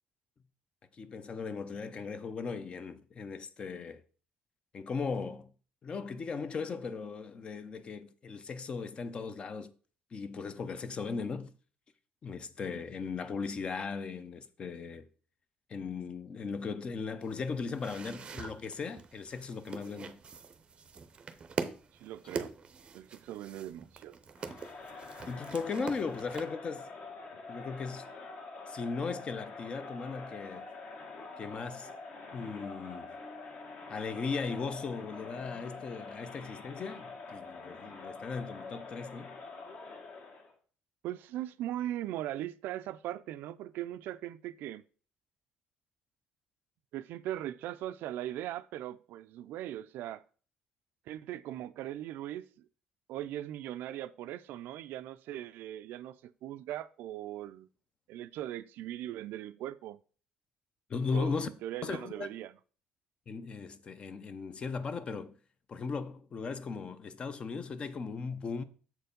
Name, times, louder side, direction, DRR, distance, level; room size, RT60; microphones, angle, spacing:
voice 1, 0.9-4.0 4.7-5.5 5.8-9.7 10.1-11.5 12.2-15.1 15.7-20.2 25.3-26.9 27.5-28.1 28.7-30.7 31.4-31.9 32.3-33.2 33.9-39.4 60.9-61.5 61.8-62.3 63.3-65.3 65.7-68.6, left 5 dB, 30° left, 0.6 m, -37 dB
sound 1, 17.2-26.5, right 5 dB, 30° right, 0.6 m, -43 dB
voice 2, 22.0-22.5 22.9-24.1 41.0-44.8 46.9-50.2 51.1-52.7 53.1-57.7 58.1-60.0 61.1-62.5, right 13 dB, 75° right, 0.4 m, -39 dB
Crowd, 24.4-40.5, left 3 dB, 50° left, 1.6 m, -46 dB
7.0 x 4.6 x 5.1 m
cardioid pair, 155°, 3 cm